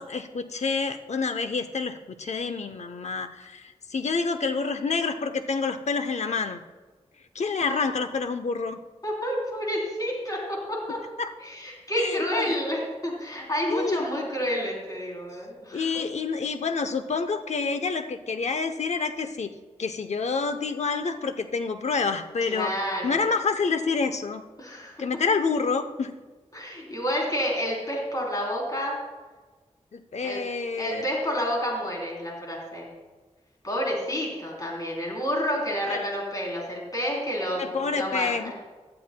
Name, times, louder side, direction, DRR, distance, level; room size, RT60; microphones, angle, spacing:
voice 1, 0.0-6.6 7.3-8.8 11.2-11.3 12.0-12.5 13.7-14.0 15.7-19.5 19.8-22.7 23.0-24.4 25.0-26.1 29.9-31.0 35.9-36.1 37.6-38.5, left 4 dB, 70° left, 9 dB, 0.7 m, -28 dB
voice 2, 9.0-11.0 11.4-15.9 22.4-23.2 24.6-25.0 26.5-29.0 30.2-30.4 30.8-32.9 33.6-38.5, equal, 30° left, -2 dB, 3.4 m, -29 dB
17.0 x 11.5 x 2.2 m, 1.3 s
wide cardioid pair, 95°, 12 cm